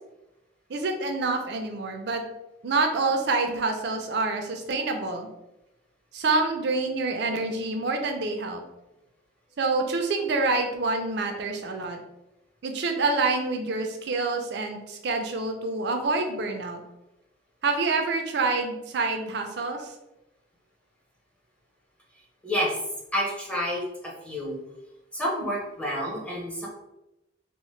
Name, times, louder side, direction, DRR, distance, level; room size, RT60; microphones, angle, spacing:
voice 1, 0.7-2.2 2.6-5.3 6.1-8.6 9.6-12.0 12.6-16.8 17.6-19.9, right 3 dB, 65° right, 4 dB, 0.4 m, -27 dB
voice 2, 22.4-22.8 23.1-24.6 25.1-26.7, equal, 5° left, -4 dB, 0.7 m, -29 dB
2.8 x 2.1 x 3.1 m, 0.92 s
head